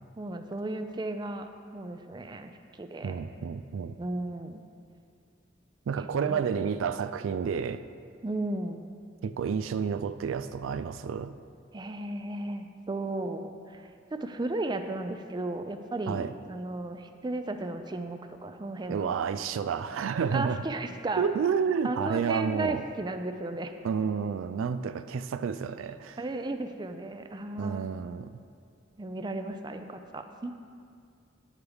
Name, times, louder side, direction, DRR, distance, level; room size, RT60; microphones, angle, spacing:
voice 1, 0.2-2.5 2.8-3.2 4.0-4.6 6.0-6.6 8.2-8.8 11.7-19.2 20.3-21.3 21.8-23.7 26.2-27.9 29.0-30.5, right 2 dB, 20° right, 7 dB, 0.4 m, -35 dB
voice 2, 3.0-4.0 5.9-7.8 9.2-11.3 16.1-16.3 18.9-20.6 21.2-22.8 23.8-26.2 27.6-28.3, right 6 dB, 90° right, 12 dB, 0.3 m, -30 dB
10.5 x 8.1 x 3.5 m, 2.3 s
head